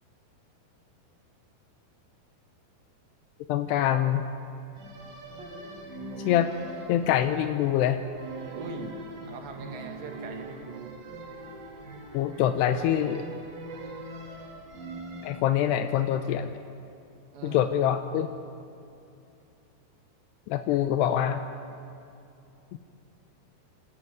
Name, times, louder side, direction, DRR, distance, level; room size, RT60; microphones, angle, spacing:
voice 1, 3.5-4.2 6.3-6.5 6.9-8.0 12.1-13.2 15.2-16.5 17.4-18.3 20.5-21.4 22.7-22.8, left 11 dB, 80° left, 9 dB, 2.8 m, -25 dB
sound 1, 4.7-15.3, right 2 dB, 65° right, 5.4 m, -42 dB
voice 2, 8.5-8.9 9.3-10.9 17.3-17.7, right 4 dB, 85° right, 4 dB, 4.1 m, -41 dB
29.0 x 12.5 x 9.3 m, 2.7 s
omnidirectional pair, 4.9 m